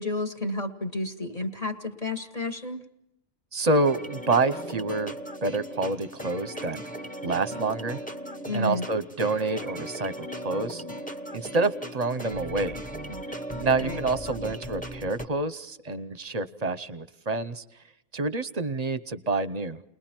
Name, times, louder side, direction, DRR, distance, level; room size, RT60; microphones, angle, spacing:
voice 1, 0.0-2.8 8.5-8.9 13.8-14.0, left 2 dB, 35° left, 5 dB, 1.7 m, -31 dB
voice 2, 3.5-5.1 5.4-6.8 7.2-8.0 8.5-10.8 11.3-12.8 13.6-17.6 18.1-19.8, right 3 dB, 35° right, 13 dB, 0.9 m, -27 dB
sound 1, 3.8-15.3, right 1 dB, 5° left, 1.0 m, -37 dB
30.0 x 21.0 x 4.5 m, 0.84 s
omnidirectional pair, 1.2 m